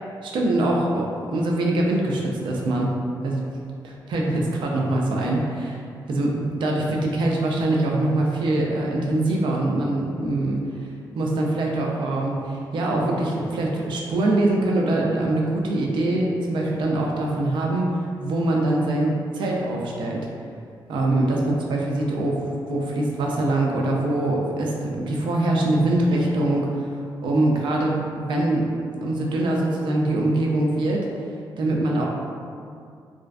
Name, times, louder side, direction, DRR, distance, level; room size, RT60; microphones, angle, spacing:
voice 1, 0.2-2.9 3.2-3.4 3.8-5.8 6.1-10.6 11.2-20.3 20.9-26.9 27.2-28.7 29.0-31.1 31.6-32.1, right 2 dB, 70° right, -1 dB, 0.3 m, -23 dB
2.4 x 2.2 x 2.3 m, 2.3 s
wide cardioid pair, 180°, 8 cm